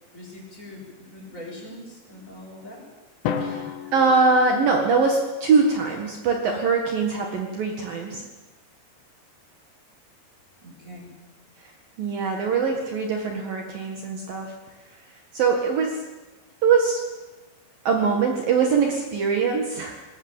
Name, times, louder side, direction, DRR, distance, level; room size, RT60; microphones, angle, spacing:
voice 1, 0.1-2.9 10.6-11.1, left 1 dB, 15° left, -1 dB, 6.9 m, -42 dB
Drum, 3.3-5.3, left 7 dB, 80° left, 3.7 m, -32 dB
voice 2, 3.4-8.2 12.0-14.5 15.3-16.0 16.6-17.0 17.8-20.0, right 4 dB, 60° right, 2 dB, 3.3 m, -22 dB
21.0 x 20.0 x 9.0 m, 1.2 s
omnidirectional pair, 5.2 m